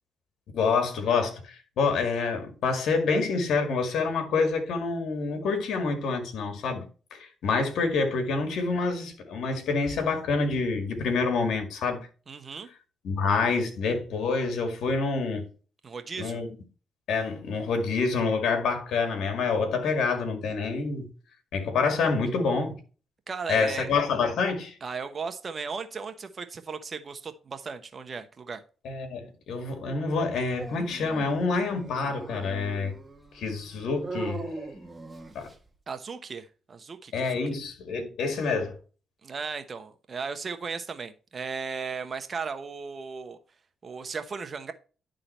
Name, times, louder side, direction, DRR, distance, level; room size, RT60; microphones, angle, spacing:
voice 1, 0.5-6.8 7.1-12.1 13.0-15.5 16.2-16.5 17.1-21.1 21.5-22.8 23.5-24.8 28.8-32.9 33.3-34.5 35.3-35.5 37.1-38.8, left 4 dB, 75° left, 2.0 m, -27 dB
voice 2, 12.3-12.7 15.8-16.4 23.3-23.9 24.8-28.6 35.9-37.4 39.2-43.4 43.8-44.7, right 5 dB, 45° right, 1.0 m, -36 dB
Dog, 30.6-35.7, right 3 dB, 15° right, 1.4 m, -40 dB
11.5 x 3.8 x 4.3 m
supercardioid pair, 65°, 0 cm